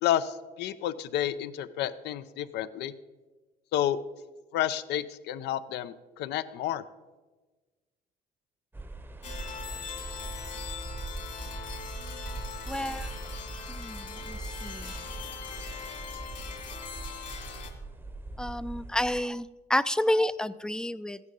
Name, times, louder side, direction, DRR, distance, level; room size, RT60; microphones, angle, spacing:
voice 1, 0.0-2.9 3.7-4.0 4.5-6.8, left 11 dB, 80° left, 14 dB, 0.6 m, -30 dB
sound 1, 8.7-19.2, right 2 dB, 10° right, 0.7 m, -41 dB
sound 2, 9.2-17.7, left 6 dB, 50° left, 2.1 m, -41 dB
voice 2, 12.7-13.1 13.7-15.0 18.4-21.2, left 1 dB, 5° left, 16 dB, 0.4 m, -30 dB
14.0 x 9.6 x 5.3 m, 1.3 s
cardioid pair, 110°, 17 cm